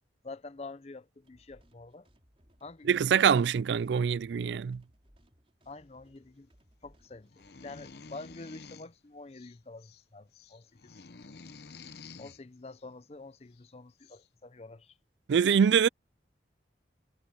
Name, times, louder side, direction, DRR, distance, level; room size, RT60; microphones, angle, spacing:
voice 1, 0.2-2.1 2.6-3.2 5.7-6.5 6.8-11.0 12.2-14.9, left 3 dB, 35° left, 0.6 m, -47 dB
sound 1, 1.2-8.4, equal, 30° right, 4.9 m, -65 dB
voice 2, 2.9-4.8 15.3-15.9, right 7 dB, 75° right, 0.4 m, -24 dB
sound 2, 7.3-8.9 9.3-10.0 10.3-12.4 13.6-13.7 14.0-14.3, left 4 dB, 65° left, 0.8 m, -50 dB
head